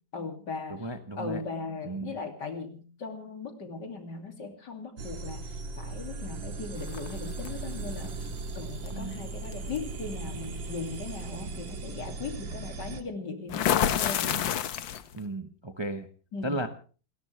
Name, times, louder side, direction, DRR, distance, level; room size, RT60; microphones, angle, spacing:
voice 1, 0.1-0.9 1.2-14.4 16.3-16.6, left 4 dB, 65° left, 4 dB, 3.3 m, -38 dB
voice 2, 0.7-1.4 1.8-2.1 8.9-9.2 15.2-16.1 16.4-16.7, right 1 dB, 15° right, 6 dB, 1.1 m, -34 dB
sound 1, 5.0-13.0, right 3 dB, 90° right, 2.4 m, -38 dB
sound 2, 6.9-7.5 8.9-9.0 9.5-9.8 13.5-15.2, left 10 dB, 80° left, 1.7 m, -27 dB
29.5 x 12.5 x 3.3 m, 0.39 s
omnidirectional pair, 2.1 m